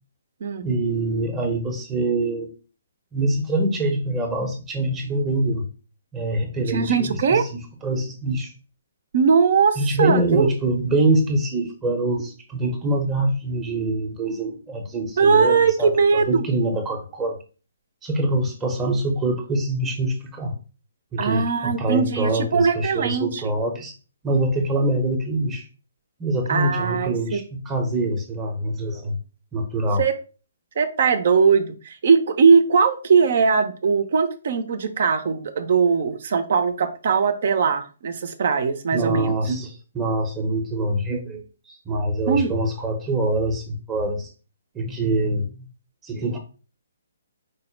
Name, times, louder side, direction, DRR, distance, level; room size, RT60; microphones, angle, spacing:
voice 1, 0.6-2.5 3.1-5.7 6.1-8.5 9.8-17.4 18.0-20.5 21.1-23.9 24.2-25.6 26.2-29.2 29.5-30.0 38.9-41.4 41.7-44.3 44.7-45.7 46.0-46.4, right 2 dB, 15° right, 2 dB, 0.8 m, -24 dB
voice 2, 6.7-7.4 9.1-10.6 15.2-16.4 21.2-23.4 26.5-27.4 30.0-30.1 30.8-39.3 42.3-42.5, right 5 dB, 55° right, 9 dB, 0.6 m, -20 dB
4.7 x 2.1 x 4.4 m, 0.35 s
hypercardioid pair, 150°, 0 cm